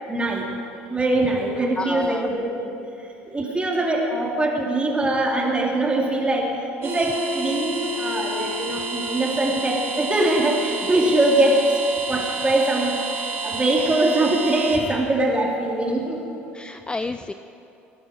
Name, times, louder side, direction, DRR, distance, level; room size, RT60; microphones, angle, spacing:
voice 1, 0.1-0.5 0.9-2.7 3.3-6.5 6.8-11.6 12.1-16.2, right 2 dB, 20° right, -2 dB, 3.5 m, -22 dB
voice 2, 1.8-2.3 16.5-17.3, left 3 dB, 15° left, 10 dB, 0.5 m, -30 dB
sound 1, 6.8-14.8, right 3 dB, 50° right, 3.1 m, -29 dB
20.5 x 11.5 x 4.8 m, 2.8 s
hypercardioid pair, 60°, 6 cm